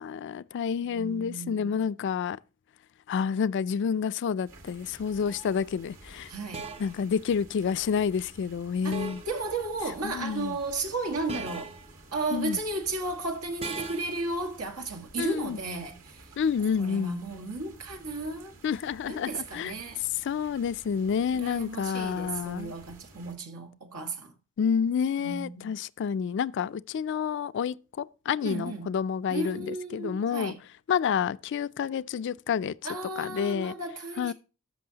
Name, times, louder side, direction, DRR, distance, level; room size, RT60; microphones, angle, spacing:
voice 1, 0.0-2.4 3.1-6.3 6.8-9.2 10.0-10.6 12.3-12.6 15.2-15.6 16.4-17.2 18.6-19.7 20.2-22.7 24.6-30.5 30.9-32.7 33.2-33.7 34.2-34.3, left 7 dB, 55° left, 0.3 m, -29 dB
voice 2, 0.8-1.9 6.3-6.7 8.8-11.7 12.1-16.3 16.8-18.5 19.1-20.0 21.3-24.3 25.2-25.7 28.4-28.9 29.3-30.6 32.8-34.3, right 2 dB, 90° right, 1.7 m, -34 dB
sound 1, 4.5-23.3, right 2 dB, 70° right, 2.1 m, -52 dB
sound 2, 5.3-5.5 6.5-7.0 8.9-9.4 11.3-11.9 13.6-14.2, right 3 dB, 25° right, 0.6 m, -39 dB
13.0 x 6.1 x 2.8 m
head